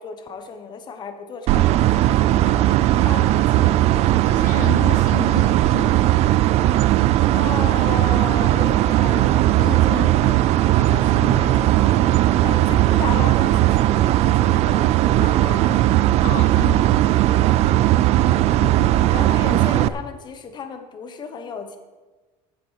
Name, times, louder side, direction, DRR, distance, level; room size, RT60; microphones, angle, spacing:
voice 1, 0.0-2.7 3.0-3.9 7.3-10.3 10.9-15.8 17.5-17.9 19.1-21.8, left 5 dB, 30° left, 1.1 m, -35 dB
sound 1, 1.5-19.9, right 14 dB, 50° right, 0.4 m, -17 dB
voice 2, 2.7-3.2 4.2-6.1 9.5-10.1 10.8-12.0 15.2-15.4 16.2-17.0 18.6-19.2, left 10 dB, 65° left, 0.8 m, -33 dB
14.5 x 6.9 x 4.9 m
cardioid pair, 165°, 14 cm